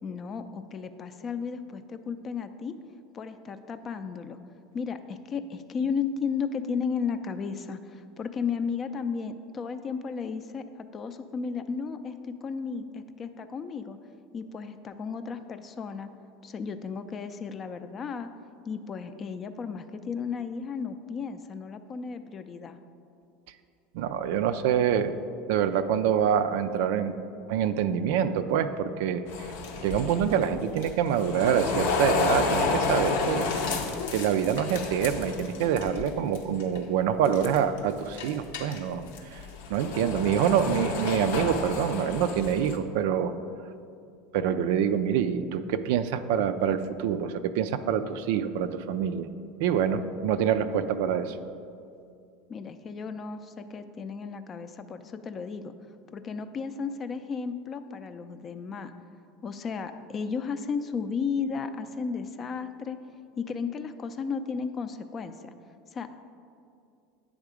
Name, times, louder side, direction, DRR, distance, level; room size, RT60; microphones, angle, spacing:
voice 1, 0.0-2.7 3.1-4.4 4.7-14.0 14.3-16.1 16.4-18.3 18.7-22.8 52.5-55.7 56.1-58.9 59.4-63.0 63.4-65.5 65.9-66.1, left 5 dB, 35° left, 9 dB, 0.4 m, -34 dB
voice 2, 23.9-25.1 25.5-27.2 27.5-29.5 29.8-33.5 34.1-39.4 39.7-43.3 44.3-49.3 49.6-51.4, right 8 dB, 65° right, 11 dB, 0.3 m, -26 dB
sound 1, 29.3-36.1 36.3-36.8 37.3-37.8 38.2-42.8, left 4 dB, 75° left, 0.7 m, -30 dB
9.0 x 3.6 x 4.9 m, 2.5 s
hypercardioid pair, 80°, 0 cm